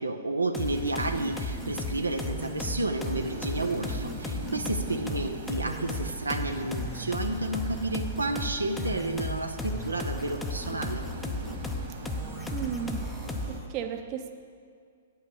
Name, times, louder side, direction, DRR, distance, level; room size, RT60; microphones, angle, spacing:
voice 1, 0.0-11.0, right 2 dB, 90° right, 6 dB, 0.6 m, -31 dB
sound 1, 0.5-13.7, left 2 dB, 10° left, 0.6 m, -35 dB
sound 2, 0.6-13.6, right 3 dB, 55° right, 1.7 m, -41 dB
voice 2, 12.5-13.2 13.5-14.3, right 9 dB, 35° right, 7 dB, 0.7 m, -35 dB
8.8 x 5.6 x 7.1 m, 2.2 s
figure-of-eight pair, 115°, 0 cm